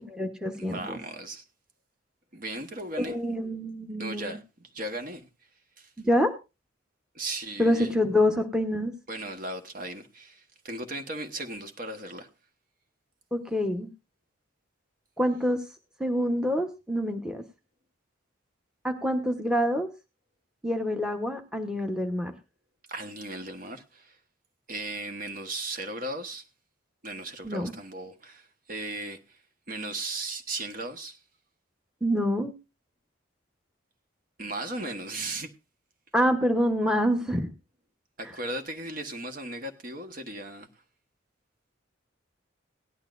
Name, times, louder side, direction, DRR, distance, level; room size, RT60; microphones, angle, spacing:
voice 1, 0.0-1.0 3.0-4.4 6.0-6.3 7.6-8.9 13.3-13.9 15.2-15.6 16.0-17.4 18.8-19.9 20.6-22.3 27.4-27.7 32.0-32.5 36.1-37.5, equal, 5° right, 1.0 m, -26 dB
voice 2, 0.6-1.4 2.3-3.2 4.0-5.3 5.8-5.9 7.1-8.0 9.1-12.3 22.9-24.2 24.7-26.4 27.0-29.4 29.7-31.2 34.4-35.5 38.2-40.7, right 2 dB, 45° right, 1.2 m, -36 dB
17.5 x 11.5 x 2.5 m
head